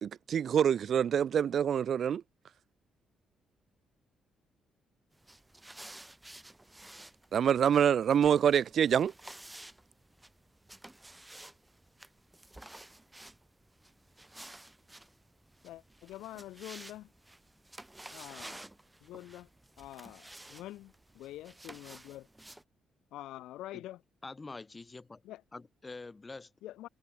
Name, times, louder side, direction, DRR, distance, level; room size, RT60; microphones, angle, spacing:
voice 1, 0.0-2.2 7.3-9.1, right 8 dB, 60° right, 0.3 m, -26 dB
sound 1, 5.1-22.6, right 1 dB, 10° right, 2.8 m, -52 dB
voice 2, 15.6-17.1 18.1-18.7 19.0-19.5 19.8-22.3 23.1-24.0 25.2-25.4 26.6-26.9, left 14 dB, 85° left, 1.6 m, -46 dB
voice 3, 24.2-25.2 25.5-26.5, left 3 dB, 25° left, 1.9 m, -46 dB
cardioid pair, 90°, 0 cm